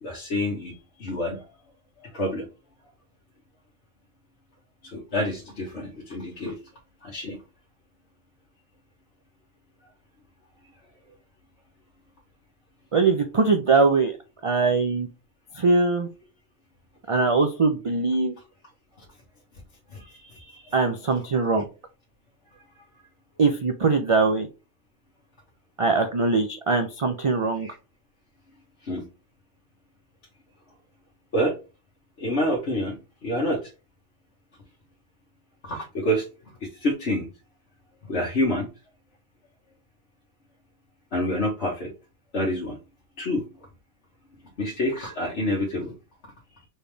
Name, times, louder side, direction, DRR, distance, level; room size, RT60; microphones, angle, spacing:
voice 1, 0.0-1.5 2.0-2.5 4.8-6.6 7.0-7.4 19.9-20.7 27.6-27.7 28.8-29.0 31.3-31.6 32.2-33.7 35.6-36.2 36.6-37.3 38.1-38.7 41.1-41.9 42.3-42.8 43.2-43.5 44.6-45.9, left 1 dB, 65° left, -4 dB, 1.5 m, -28 dB
voice 2, 12.9-14.2 14.4-15.1 15.6-16.1 17.1-18.3 20.7-21.6 23.4-24.5 25.8-27.7, right 4 dB, 40° right, 6 dB, 0.4 m, -21 dB
4.3 x 3.5 x 3.3 m, 0.30 s
omnidirectional pair, 1.2 m